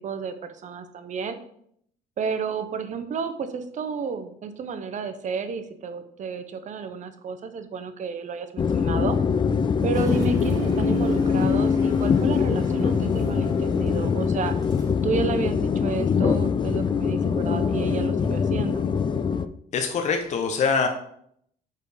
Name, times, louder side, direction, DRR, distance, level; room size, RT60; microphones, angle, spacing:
voice 1, 0.0-1.4 2.2-9.2 9.8-14.5 15.0-18.8, right 5 dB, 45° right, 9 dB, 0.7 m, -31 dB
sound 1, 8.6-19.5, left 6 dB, 30° left, 0.4 m, -23 dB
sound 2, 9.9-15.0, right 2 dB, 20° right, 1.6 m, -46 dB
voice 2, 19.7-20.9, left 5 dB, 45° left, 5 dB, 0.8 m, -23 dB
5.3 x 4.4 x 4.9 m, 0.68 s
cardioid pair, 110°, 17 cm